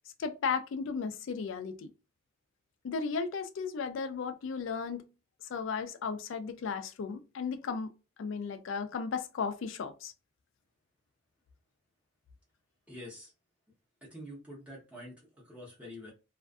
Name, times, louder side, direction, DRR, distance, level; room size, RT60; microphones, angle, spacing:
voice 1, 0.2-1.9 2.8-5.1 5.4-7.9 8.2-10.1, left 5 dB, 65° left, 0.4 m, -35 dB
voice 2, 12.9-13.3 14.0-16.1, left 1 dB, 5° right, 0.8 m, -47 dB
2.4 x 2.3 x 2.3 m
head